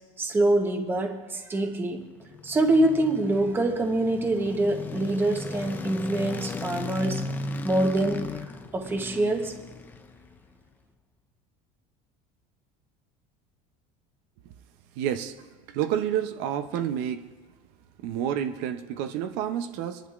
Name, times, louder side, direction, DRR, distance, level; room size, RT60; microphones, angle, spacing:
voice 1, 0.2-2.1 2.4-7.3 7.6-8.3 8.7-9.6, right 2 dB, 15° right, 5 dB, 0.9 m, -25 dB
sound 1, 2.1-10.5, left 3 dB, 10° left, 0.4 m, -37 dB
voice 2, 15.0-15.3 15.7-17.2 18.0-20.0, right 10 dB, 65° right, 9 dB, 0.7 m, -29 dB
25.0 x 11.5 x 2.4 m, 1.4 s
cardioid pair, 175°, 16 cm